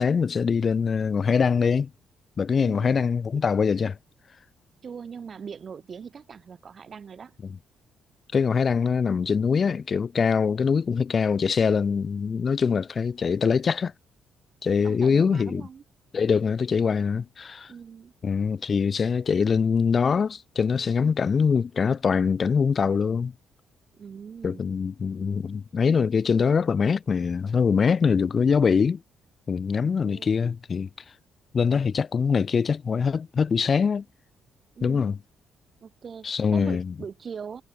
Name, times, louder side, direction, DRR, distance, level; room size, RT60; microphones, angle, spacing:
voice 1, 0.0-1.9 2.4-4.0 8.3-13.9 14.6-15.6 16.1-17.7 18.2-23.3 24.4-29.0 29.5-30.9 31.5-34.0 34.8-35.2 36.2-36.9, left 6 dB, 45° left, 1.2 m, -23 dB
voice 2, 2.6-3.0 4.8-7.4 14.8-15.8 17.7-18.1 23.9-24.7 30.0-30.5 34.8-35.1 35.8-37.6, right 6 dB, 45° right, 5.3 m, -40 dB
cardioid pair, 90°, 0 cm